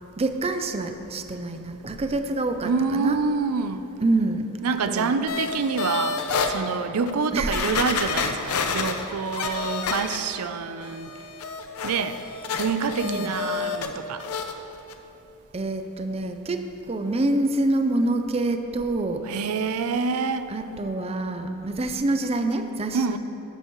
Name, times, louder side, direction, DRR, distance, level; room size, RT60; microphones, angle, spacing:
voice 1, 0.2-3.2 4.0-4.5 4.9-5.1 7.3-7.6 13.0-13.5 15.5-19.3 20.5-23.2, right 2 dB, 30° right, 7 dB, 0.5 m, -26 dB
voice 2, 2.6-3.8 4.6-6.2 6.5-11.1 11.8-12.2 12.5-14.2 19.3-20.5 22.9-23.2, right 5 dB, 90° right, 10 dB, 0.5 m, -26 dB
sound 1, 5.3-6.5 7.1-7.2 7.5-10.5 10.8-13.9 14.2-14.5 14.9-15.0, left 5 dB, 80° left, 0.7 m, -29 dB
12.5 x 11.5 x 3.1 m, 2.9 s
head